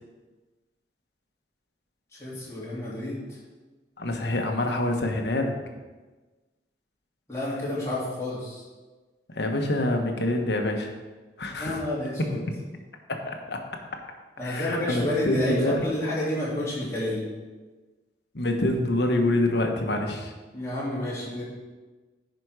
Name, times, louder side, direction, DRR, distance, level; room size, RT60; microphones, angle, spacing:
voice 1, 2.2-3.4 7.3-8.6 11.6-12.4 14.4-17.3 20.5-21.4, left 1 dB, 15° left, -8 dB, 3.1 m, -30 dB
voice 2, 4.0-5.6 9.3-10.9 11.4-11.8 12.2-12.3 13.2-13.6 14.4-15.8 18.3-20.3, left 1 dB, 75° left, 3 dB, 1.2 m, -26 dB
10.5 x 5.2 x 4.8 m, 1.3 s
head